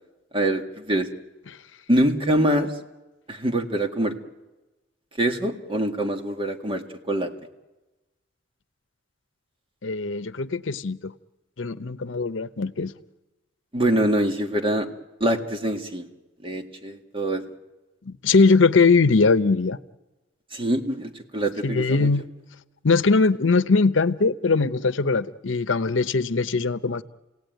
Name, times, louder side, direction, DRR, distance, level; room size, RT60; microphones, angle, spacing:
voice 1, 0.3-1.1 1.9-2.7 3.3-4.1 5.2-7.3 13.7-14.9 15.2-16.1 16.4-17.4 20.5-22.1, right 1 dB, 30° right, 5 dB, 1.9 m, -24 dB
voice 2, 9.8-11.1 11.6-12.9 18.1-19.8 21.6-22.3 22.8-27.0, left 4 dB, 85° left, 15 dB, 0.8 m, -21 dB
30.0 x 17.5 x 9.2 m, 1.1 s
head